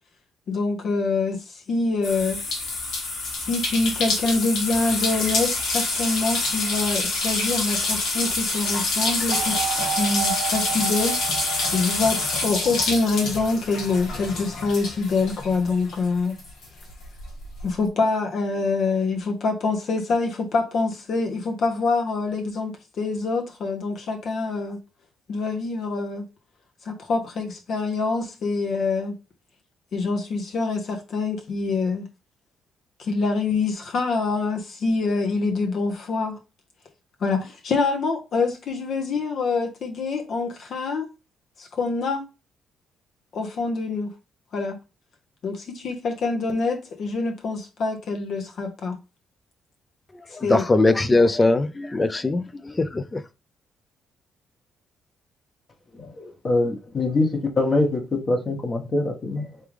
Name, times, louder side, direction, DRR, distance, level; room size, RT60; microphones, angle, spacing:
voice 1, 0.5-2.4 3.3-9.7 9.9-11.1 11.7-16.4 17.6-24.8 25.3-26.2 26.8-29.1 29.9-32.1 33.0-36.4 37.2-41.1 41.6-42.2 43.3-44.1 44.5-44.8 45.4-49.0 50.3-50.6, left 3 dB, 60° left, 0.8 m, -25 dB
sound 1, 2.0-16.1 16.4-17.6, left 3 dB, 80° left, 1.6 m, -27 dB
sound 2, 9.3-13.5, right 8 dB, 80° right, 0.8 m, -32 dB
voice 2, 50.3-53.2, left 2 dB, 20° left, 0.4 m, -21 dB
voice 3, 55.9-57.3 57.6-59.4, left 2 dB, 40° left, 1.2 m, -24 dB
3.6 x 3.3 x 3.2 m
cardioid pair, 90°, 0 cm